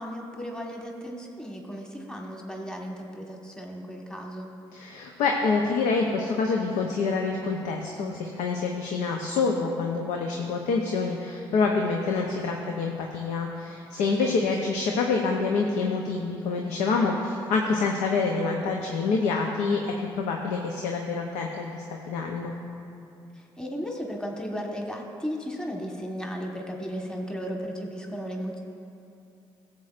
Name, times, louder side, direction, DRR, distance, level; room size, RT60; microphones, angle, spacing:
voice 1, 0.0-4.5 14.2-14.3 14.6-14.7 23.3-28.6, equal, 5° left, 0 dB, 1.3 m, -35 dB
voice 2, 4.7-22.5, left 4 dB, 75° left, 1 dB, 0.7 m, -27 dB
16.5 x 7.5 x 2.5 m, 2.7 s
hypercardioid pair, 50°, 12 cm